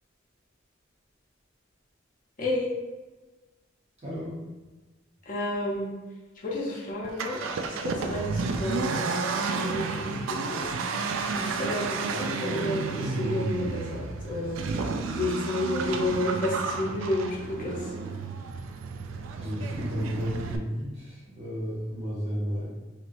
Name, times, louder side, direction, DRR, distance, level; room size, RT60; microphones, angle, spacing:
voice 1, 2.4-2.7 5.3-5.9 6.4-10.7 11.3-14.6 15.2-17.9, left 1 dB, 45° left, -5 dB, 0.6 m, -31 dB
voice 2, 4.0-4.4 19.3-22.7, equal, 35° right, -8 dB, 1.1 m, -33 dB
Accelerating revving vroom, 7.0-20.6, right 4 dB, 80° right, 0.3 m, -31 dB
sound 1, 12.3-16.5 17.2-21.1, right 2 dB, 50° right, 0.9 m, -43 dB
3.1 x 2.8 x 2.5 m, 1.2 s
head